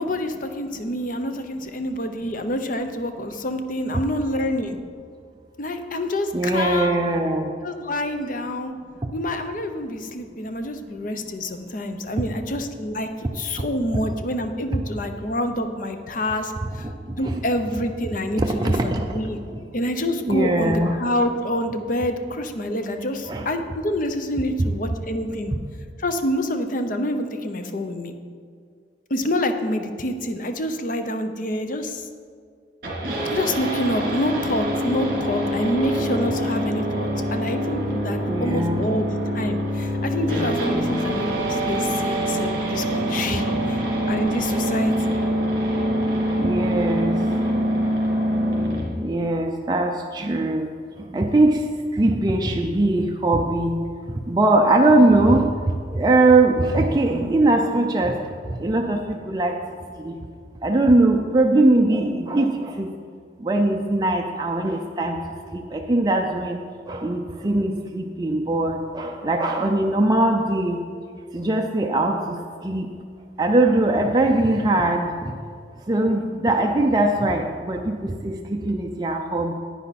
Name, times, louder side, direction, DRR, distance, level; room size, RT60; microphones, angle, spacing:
voice 1, 0.0-4.8 5.6-7.0 7.6-8.7 9.1-13.1 13.3-16.5 17.2-19.4 19.7-25.5 26.0-28.1 29.1-32.0 33.3-43.8 44.1-45.2, left 1 dB, 50° left, 7 dB, 0.7 m, -27 dB
voice 2, 6.3-7.5 9.0-9.1 16.6-16.9 17.2-17.4 18.4-19.1 19.5-19.6 20.2-21.0 23.3-23.5 24.6-24.7 37.2-37.3 38.2-38.9 46.4-47.2 48.9-50.7 51.1-51.6 51.9-53.7 54.3-55.5 55.9-58.2 58.5-59.6 60.0-60.1 60.6-62.9 63.4-65.2 65.5-66.6 66.9-70.8 71.3-72.4 72.6-72.9 73.4-75.3 75.9-79.6, right 2 dB, 25° right, 1 dB, 0.5 m, -21 dB
sound 1, 32.8-48.8, equal, 55° right, 2.6 m, -24 dB
10.0 x 9.3 x 4.2 m, 2.1 s
head